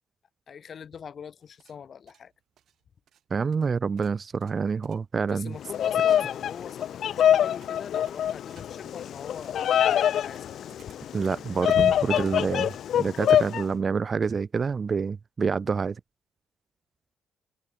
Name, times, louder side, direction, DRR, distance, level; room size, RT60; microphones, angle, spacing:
voice 1, 0.5-2.3 5.3-10.5, left 7 dB, 50° left, 4.3 m, -42 dB
sound 1, 1.4-13.3, right 10 dB, 70° right, 4.3 m, -61 dB
voice 2, 3.3-5.5 11.1-16.0, right 5 dB, 40° right, 0.3 m, -27 dB
Bird vocalization bird call bird song, 5.6-13.6, left 10 dB, 65° left, 0.4 m, -25 dB
cardioid pair, 90°, 0 cm